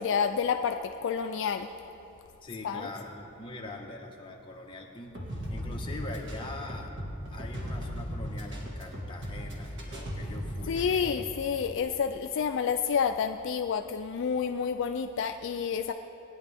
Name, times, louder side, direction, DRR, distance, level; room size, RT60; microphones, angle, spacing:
voice 1, 0.0-1.7 2.6-2.9 10.7-15.9, left 6 dB, 60° left, 7 dB, 0.4 m, -29 dB
voice 2, 2.4-5.2 5.5-6.9 7.3-11.0, left 2 dB, 25° left, -1 dB, 1.2 m, -43 dB
sound 1, 5.1-11.3, equal, 60° right, 1.9 m, -37 dB
19.0 x 9.8 x 3.5 m, 3.0 s
head